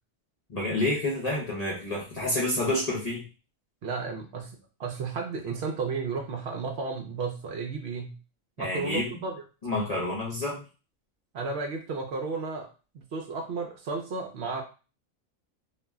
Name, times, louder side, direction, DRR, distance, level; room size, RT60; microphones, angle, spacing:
voice 1, 0.5-3.2 8.6-9.1 9.6-10.6, left 1 dB, 40° left, -5 dB, 0.6 m, -29 dB
voice 2, 3.8-4.5 4.8-8.1 8.6-9.4 11.3-12.7 12.9-14.6, right 4 dB, 65° right, 2 dB, 0.7 m, -33 dB
2.5 x 2.1 x 3.4 m, 0.33 s
omnidirectional pair, 1.4 m